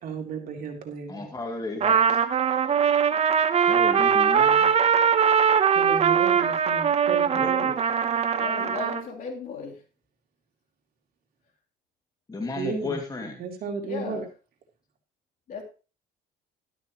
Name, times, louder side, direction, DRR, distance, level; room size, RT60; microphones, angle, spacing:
voice 1, 0.0-1.3 5.7-7.6 12.5-13.0 13.4-14.3, right 5 dB, 60° right, 1 dB, 3.5 m, -33 dB
voice 2, 1.1-2.2 3.7-4.8 7.3-7.8 12.3-13.4, left 2 dB, 20° left, 2 dB, 2.4 m, -34 dB
Trumpet, 1.8-9.0, right 7 dB, 40° right, 1.0 m, -21 dB
voice 3, 8.3-9.8 13.8-14.3 15.5-15.6, left 5 dB, 55° left, 0 dB, 3.5 m, -36 dB
12.5 x 12.5 x 3.1 m, 0.33 s
cardioid pair, 110°, 17 cm